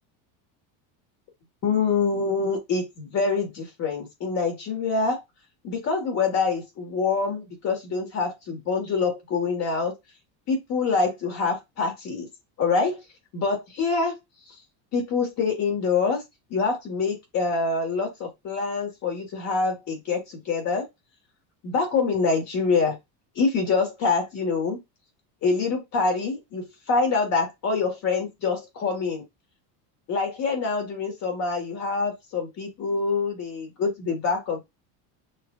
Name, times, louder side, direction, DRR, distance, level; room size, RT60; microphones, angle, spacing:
voice 1, 1.6-5.2 5.6-9.9 10.5-12.3 12.6-13.0 13.3-14.2 14.9-16.2 16.5-20.9 21.6-23.0 23.3-24.8 25.4-29.2 30.1-34.6, left 4 dB, 35° left, 3 dB, 1.6 m, -25 dB
6.3 x 2.5 x 2.4 m, 0.19 s
cardioid pair, 170°, 47 cm